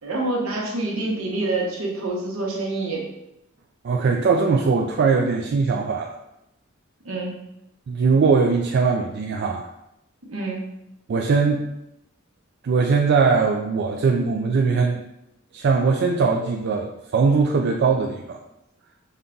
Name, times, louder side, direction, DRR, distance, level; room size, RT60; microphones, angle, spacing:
voice 1, 0.0-3.1 7.0-7.3 10.3-10.7, right 2 dB, 75° right, -1 dB, 1.0 m, -26 dB
voice 2, 3.8-6.1 7.9-9.7 11.1-11.7 12.6-15.0 15.5-18.4, right 4 dB, 55° right, 1 dB, 0.3 m, -20 dB
5.5 x 2.3 x 3.7 m, 0.85 s
head